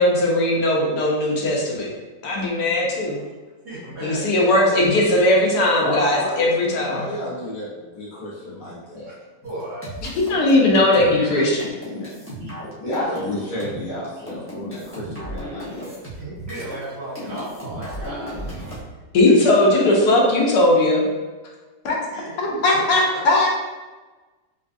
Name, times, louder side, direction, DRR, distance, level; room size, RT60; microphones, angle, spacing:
voice 1, 0.0-1.9 2.2-3.2 4.0-7.0 10.3-11.7 19.1-21.1 21.8-22.0 22.4-23.5, left 1 dB, 75° left, -2 dB, 1.3 m, -18 dB
voice 2, 3.6-4.9 6.9-7.3 9.0-9.1 9.4-9.9 10.8-11.5 12.2-12.5 13.0-13.5 16.2-18.6 19.3-19.6 22.1-22.8 23.1-23.2, right 1 dB, 75° right, -9 dB, 1.9 m, -35 dB
voice 3, 5.8-6.5 6.9-9.1 11.9-12.1 12.8-16.0, left 1 dB, 55° left, -7 dB, 1.4 m, -31 dB
sound 1, 9.4-16.9 17.2-18.8, equal, 15° left, 0.4 m, -34 dB
4.1 x 2.3 x 2.5 m, 1.2 s
omnidirectional pair, 1.8 m